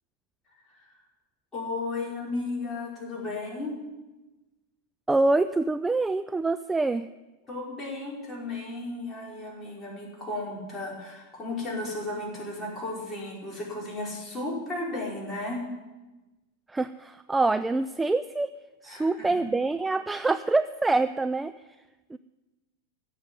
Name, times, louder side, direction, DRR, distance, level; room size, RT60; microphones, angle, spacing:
voice 1, 1.5-3.7 7.5-15.6 18.9-19.3, left 2 dB, 15° left, -4 dB, 5.3 m, -34 dB
voice 2, 5.1-7.1 16.7-18.5 18.8-21.5 22.1-22.2, right 3 dB, 10° right, 11 dB, 0.4 m, -25 dB
15.5 x 7.2 x 9.3 m, 1.1 s
figure-of-eight pair, 90°, 0 cm